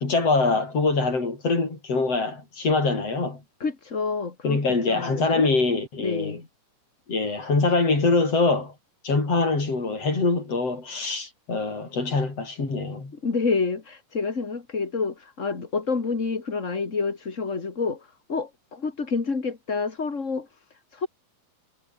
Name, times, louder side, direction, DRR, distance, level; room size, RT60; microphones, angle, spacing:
voice 1, 0.0-3.4 4.4-6.4 7.1-8.7 9.0-13.1, left 3 dB, 50° left, 7.4 m, -24 dB
voice 2, 3.6-5.5 6.0-6.5 13.1-20.5 20.9-21.1, left 4 dB, 25° left, 2.8 m, -28 dB
omnidirectional pair, 3.5 m